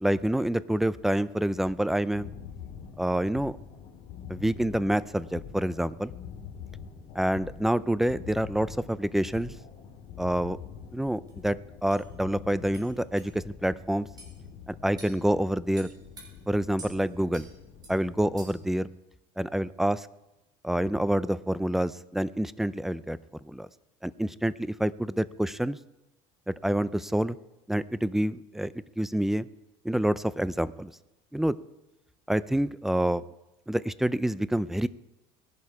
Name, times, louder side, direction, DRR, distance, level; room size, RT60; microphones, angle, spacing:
voice 1, 0.0-2.3 3.0-3.5 4.3-6.1 7.2-9.5 10.2-10.6 10.9-14.1 14.7-15.9 16.5-17.5 17.9-18.9 19.4-20.1 20.6-23.2 23.4-23.7 24.0-25.8 26.5-27.4 27.7-29.5 29.8-30.9 31.3-31.5 32.3-33.2 33.7-34.9, right 1 dB, ahead, 17 dB, 0.4 m, -27 dB
sound 1, 2.1-18.7, left 7 dB, 65° left, 2.9 m, -45 dB
sound 2, 11.3-11.4 11.9-12.0 12.7-12.9 13.2-13.3 14.2-14.3 15.0-15.2 15.8-16.3 16.8-16.9 17.3-17.5 17.8-18.0 18.4-18.7, right 2 dB, 30° right, 4.0 m, -47 dB
19.5 x 11.5 x 4.8 m, 0.98 s
cardioid pair, 135°, 13 cm